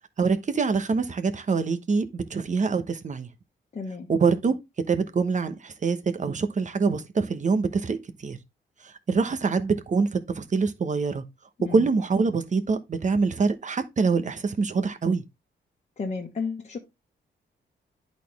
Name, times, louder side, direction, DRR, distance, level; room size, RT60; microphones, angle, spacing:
voice 1, 0.2-3.3 4.1-4.6 4.9-8.4 8.8-11.2 11.6-15.2, right 4 dB, 40° right, 1.1 m, -25 dB
voice 2, 3.7-4.1 11.6-11.8 16.0-16.8, left 4 dB, 35° left, 1.4 m, -32 dB
11.0 x 4.2 x 3.5 m
wide cardioid pair, 120°, 19 cm